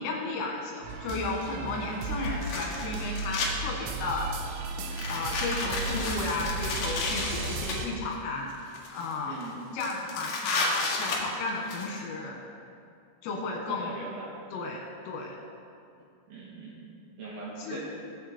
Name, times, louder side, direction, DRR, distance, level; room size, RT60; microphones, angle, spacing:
voice 1, 0.0-4.3 5.1-8.5 8.9-9.4 9.7-12.4 13.2-13.9 14.5-15.4 17.6-17.8, left 3 dB, 80° left, 0 dB, 4.3 m, -33 dB
sound 1, 0.8-7.9, right 3 dB, 80° right, 2.8 m, -35 dB
sound 2, 0.9-1.0 2.3-3.5 4.0-4.3 4.9-7.8 8.5-9.1 9.4-9.5 9.8-11.9, left 3 dB, 60° left, 2.2 m, -32 dB
voice 2, 13.7-14.3 16.3-16.8 17.2-17.8, right 2 dB, 55° right, -5 dB, 3.3 m, -40 dB
19.0 x 7.3 x 4.4 m, 2.4 s
omnidirectional pair, 5.8 m